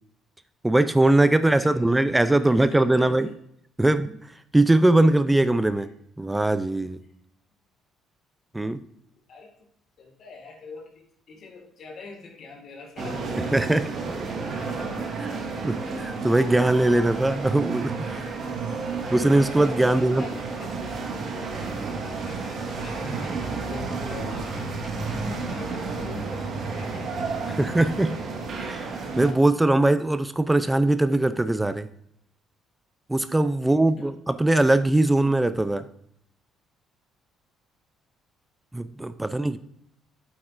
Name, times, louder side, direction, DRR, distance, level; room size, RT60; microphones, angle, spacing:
voice 1, 0.6-3.3 3.8-4.2 4.5-5.9 6.2-7.0 8.5-8.8 13.5-13.9 15.2-15.4 15.6-18.3 19.1-20.2 27.5-28.1 28.6-28.9 29.2-31.9 33.1-35.9 38.7-39.6, right 2 dB, 15° right, 13 dB, 0.5 m, -21 dB
voice 2, 1.4-3.4 5.8-5.9 7.0-7.1 9.3-9.7 10.0-15.4 18.7-18.9 19.8-21.5 21.7-27.9 33.6-34.1, left 4 dB, 60° left, 2 dB, 2.0 m, -45 dB
sound 1, 13.0-29.3, right 4 dB, 55° right, 1.7 m, -31 dB
8.5 x 8.3 x 2.6 m, 0.71 s
supercardioid pair, 60°, 0 cm